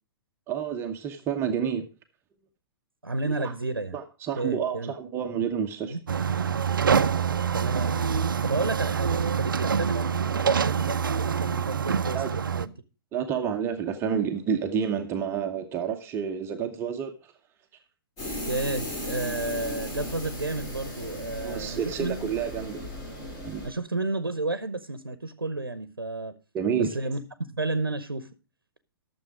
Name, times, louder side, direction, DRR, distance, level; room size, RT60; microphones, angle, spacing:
voice 1, 0.5-1.8 3.2-3.5 3.9-6.0 12.1-12.3 13.1-17.1 21.4-22.8 23.4-23.7 26.5-27.0, right 7 dB, 20° right, 5 dB, 0.9 m, -29 dB
voice 2, 3.0-4.0 4.4-5.0 5.9-6.0 7.5-8.0 8.4-12.7 18.5-22.3 23.6-26.3 26.8-28.3, right 2 dB, 85° right, 13 dB, 0.9 m, -31 dB
sound 1, 6.1-12.7, right 7 dB, 70° right, 0.5 m, -25 dB
sound 2, 18.2-23.7, equal, 30° left, 4.6 m, -36 dB
12.5 x 7.0 x 4.8 m, 0.32 s
figure-of-eight pair, 115°, 12 cm